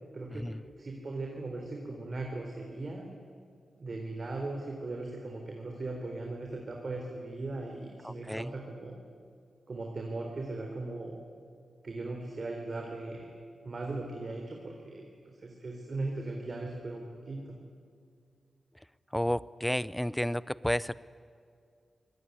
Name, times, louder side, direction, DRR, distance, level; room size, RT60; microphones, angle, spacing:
voice 1, 0.1-0.5 0.8-3.0 3.8-8.9 9.7-11.1 11.8-13.3 13.6-17.6, right 2 dB, 50° right, 1 dB, 3.7 m, -38 dB
voice 2, 8.0-8.5 19.1-20.9, equal, 5° left, 18 dB, 0.6 m, -31 dB
25.5 x 18.5 x 9.7 m, 2.2 s
cardioid pair, 70°, 0 cm